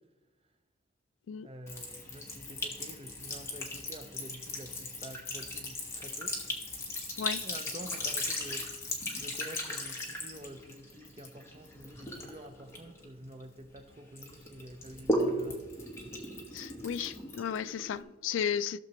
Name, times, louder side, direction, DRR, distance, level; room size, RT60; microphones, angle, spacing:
voice 1, 1.4-6.4 7.4-15.6, right 1 dB, 30° right, 0.7 m, -48 dB
Sink (filling or washing) / Trickle dribble, 1.7-13.8 14.2-18.0, left 1 dB, 15° left, 1.2 m, -37 dB
voice 2, 16.5-18.8, left 8 dB, 75° left, 0.3 m, -34 dB
15.5 x 6.7 x 3.0 m
head